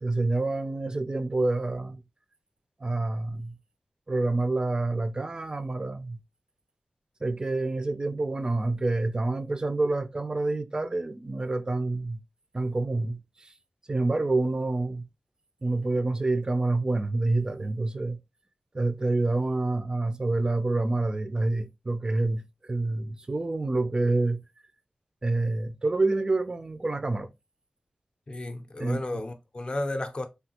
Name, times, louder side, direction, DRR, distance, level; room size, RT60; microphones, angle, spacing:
voice 1, 0.0-2.0 2.8-3.6 4.1-6.2 7.2-12.2 12.5-13.2 13.9-15.1 15.6-18.2 18.7-24.4 25.2-27.3 28.8-29.0, right 2 dB, 30° right, 0.4 m, -27 dB
voice 2, 28.3-30.3, left 2 dB, 35° left, 0.5 m, -33 dB
3.3 x 2.3 x 2.8 m
wide cardioid pair, 110°, 3 cm